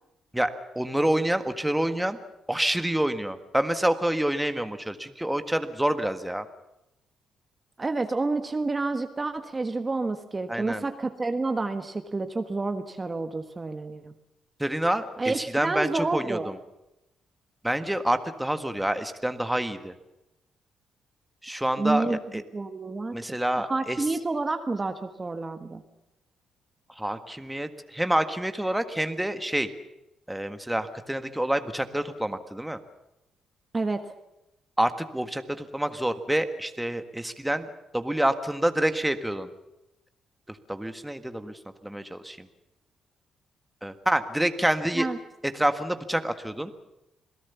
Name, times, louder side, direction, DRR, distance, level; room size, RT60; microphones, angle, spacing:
voice 1, 0.3-2.2 2.5-6.4 10.5-10.8 14.6-16.6 17.6-19.9 21.4-22.0 22.3-22.4 23.1-24.0 26.9-29.7 30.3-32.8 34.8-37.7 37.9-39.5 40.5-42.5 43.8-45.1 45.4-46.7, right 1 dB, 5° right, 9 dB, 1.6 m, -27 dB
voice 2, 7.8-14.1 15.2-16.5 21.8-22.2 22.5-23.1 23.6-25.8 33.7-34.0 44.9-45.2, right 3 dB, 25° right, 7 dB, 1.4 m, -29 dB
27.0 x 17.5 x 7.2 m, 0.91 s
cardioid pair, 90°, 0 cm